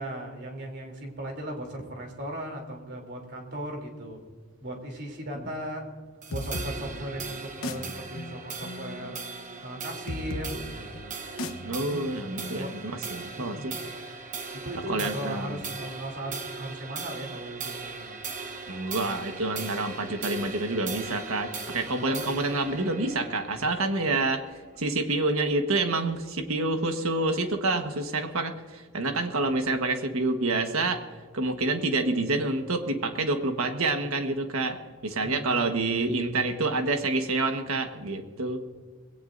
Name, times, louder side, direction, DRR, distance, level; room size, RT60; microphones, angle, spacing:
voice 1, 0.0-4.2 4.6-5.9 6.3-9.3 9.6-10.9 12.5-12.7 13.3-13.7 14.5-18.2 21.9-22.5 35.2-36.1, right 1 dB, 50° right, 2 dB, 3.2 m, -37 dB
sound 1, 6.2-24.8, right 4 dB, 35° right, 1.0 m, -39 dB
sound 2, 6.3-13.7, left 1 dB, 70° left, 1.0 m, -39 dB
voice 2, 11.6-13.8 14.9-15.6 18.7-24.4 24.8-31.0 31.3-34.8 35.0-38.6, right 2 dB, 70° right, 6 dB, 1.4 m, -28 dB
21.5 x 17.5 x 2.6 m, 1.5 s
head